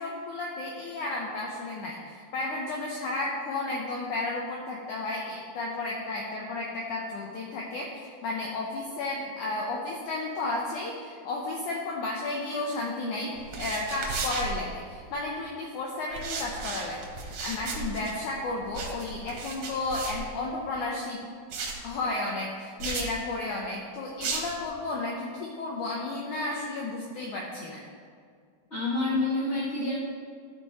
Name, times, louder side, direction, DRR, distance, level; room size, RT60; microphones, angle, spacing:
voice 1, 0.0-21.2 21.8-27.8, left 2 dB, 80° left, -2 dB, 1.8 m, -33 dB
sound 1, 13.4-15.2 16.1-20.8 21.5-21.9 22.8-23.1 24.2-24.6, right 4 dB, 60° right, 1.9 m, -35 dB
voice 2, 28.7-30.0, left 2 dB, 55° left, -9 dB, 0.7 m, -27 dB
14.0 x 5.2 x 4.2 m, 2.1 s
omnidirectional pair, 4.6 m